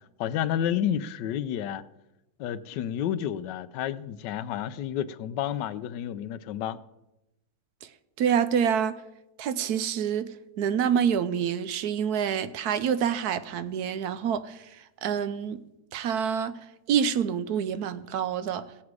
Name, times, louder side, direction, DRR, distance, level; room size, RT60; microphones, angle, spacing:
voice 1, 0.2-1.8 2.4-6.8, left 10 dB, 85° left, 1.2 m, -30 dB
voice 2, 8.2-9.0 9.4-10.3 10.6-14.6 15.0-15.6 15.9-16.6 16.9-18.7, right 8 dB, 70° right, 1.1 m, -27 dB
17.0 x 7.3 x 4.7 m
omnidirectional pair, 1.8 m